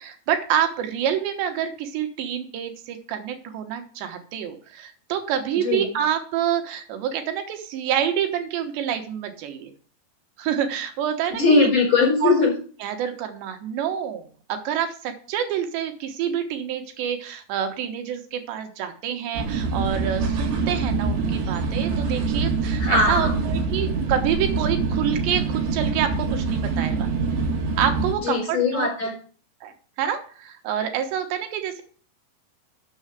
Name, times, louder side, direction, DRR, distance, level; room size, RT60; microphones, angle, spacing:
voice 1, 0.0-9.7 10.4-11.7 12.2-12.3 12.8-27.1 27.8-29.1 29.6-31.8, right 9 dB, 90° right, 6 dB, 3.4 m, -27 dB
voice 2, 5.5-5.9 11.4-12.5 22.8-23.3 28.2-29.1, left 3 dB, 30° left, -2 dB, 4.7 m, -20 dB
sound 1, 19.3-28.1, right 4 dB, 70° right, 3.5 m, -25 dB
7.1 x 6.6 x 7.9 m, 0.42 s
omnidirectional pair, 5.0 m